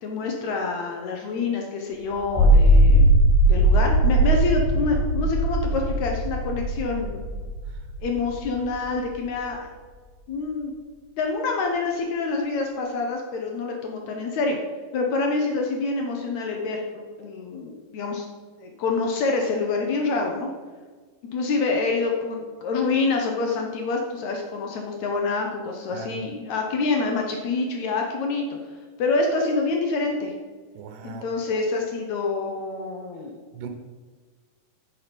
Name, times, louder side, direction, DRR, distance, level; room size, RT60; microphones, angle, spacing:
voice 1, 0.0-3.2 3.4-7.2 8.0-9.7 10.3-10.8 11.2-14.6 14.9-18.3 18.6-20.5 21.3-28.6 29.0-30.3 31.0-33.4, left 3 dB, 70° left, 1 dB, 1.9 m, -26 dB
sound 1, 2.2-8.7, right 1 dB, 90° left, 3.0 m, -19 dB
voice 2, 25.9-26.3 30.8-31.2 33.5-33.7, right 6 dB, 75° right, 5 dB, 2.3 m, -38 dB
9.9 x 5.9 x 5.2 m, 1.5 s
omnidirectional pair, 3.9 m